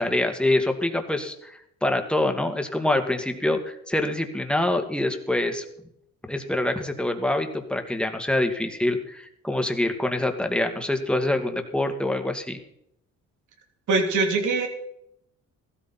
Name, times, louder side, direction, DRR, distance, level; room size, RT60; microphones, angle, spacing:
voice 1, 0.0-1.5 1.8-5.6 6.3-12.6, left 1 dB, 5° left, 5 dB, 2.1 m, -25 dB
voice 2, 13.9-14.7, right 3 dB, 75° right, 3 dB, 3.2 m, -22 dB
15.5 x 13.5 x 4.3 m, 0.74 s
cardioid pair, 90°, 30 cm